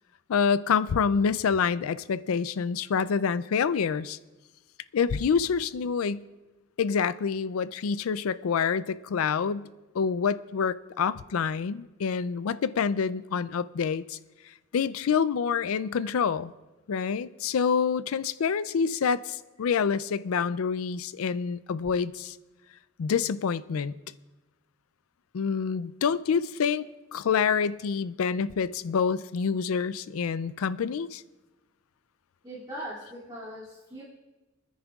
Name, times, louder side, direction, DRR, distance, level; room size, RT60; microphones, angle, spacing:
voice 1, 0.3-4.2 4.9-6.3 6.8-9.7 9.9-14.2 14.7-16.5 16.9-22.4 23.0-23.9 25.3-26.9 27.1-31.2, left 6 dB, 90° left, 0.4 m, -27 dB
voice 2, 32.4-34.0, equal, 20° right, 2.5 m, -40 dB
26.0 x 10.5 x 2.4 m
head